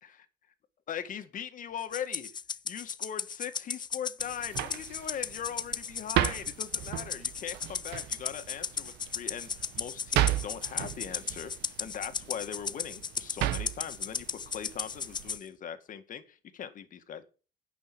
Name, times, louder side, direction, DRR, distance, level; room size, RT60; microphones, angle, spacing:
voice 1, 0.9-2.3 2.7-11.5 11.8-17.3, left 9 dB, 50° left, 9 dB, 1.9 m, -40 dB
Rattle (instrument), 1.9-15.4, left 6 dB, 25° left, 0.5 m, -36 dB
sound 1, 4.2-15.4, right 13 dB, 85° right, 1.0 m, -35 dB
10.0 x 6.1 x 8.7 m, 0.35 s
cardioid pair, 110°, 17 cm